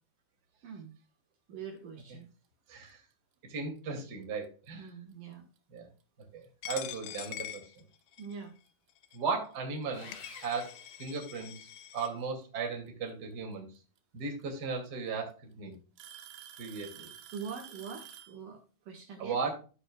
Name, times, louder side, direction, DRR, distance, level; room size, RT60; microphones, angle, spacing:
voice 1, 0.6-0.9 1.5-2.3 4.7-5.5 8.2-8.6 17.3-19.4, right 6 dB, 60° right, 1 dB, 3.0 m, -44 dB
voice 2, 2.7-3.0 3.4-4.9 5.7-5.9 6.3-7.6 9.1-10.1 10.4-10.7 11.0-13.7 14.1-15.7 16.6-17.1 19.2-19.6, right 4 dB, 30° right, 1 dB, 2.5 m, -36 dB
Alarm / Tick-tock, 4.4-4.7 5.6-5.7 6.4-6.5 8.2-8.3 9.6-9.7 10.9-11.3 13.1-13.2 14.4-14.5 14.9-15.3 16.0-18.4, right 10 dB, 85° right, 3.3 m, -50 dB
Coin (dropping), 6.6-8.4 9.0-9.2 9.8-9.9 10.1-12.1, left 12 dB, 80° left, 2.4 m, -44 dB
Sawing, 9.9-11.8, left 4 dB, 60° left, 3.2 m, -51 dB
15.5 x 5.4 x 2.3 m, 0.35 s
omnidirectional pair, 4.6 m